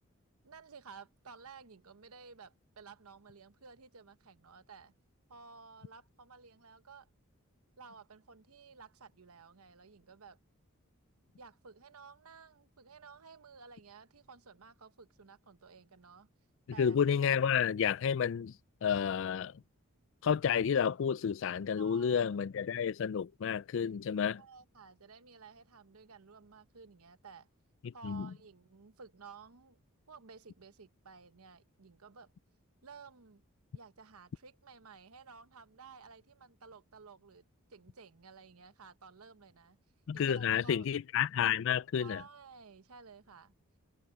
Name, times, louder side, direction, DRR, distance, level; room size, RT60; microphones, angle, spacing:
voice 1, 0.4-4.9 5.3-7.1 7.8-10.4 11.4-16.3 16.7-17.0 21.8-22.3 24.4-27.5 27.9-29.8 30.1-32.3 32.8-33.4 33.7-37.4 37.7-39.8 40.1-40.9 42.0-43.5, right 5 dB, 85° right, 1.0 m, -54 dB
voice 2, 16.8-18.5 18.8-19.5 20.2-24.4 27.8-28.3 40.1-42.2, left 7 dB, 60° left, 0.3 m, -30 dB
head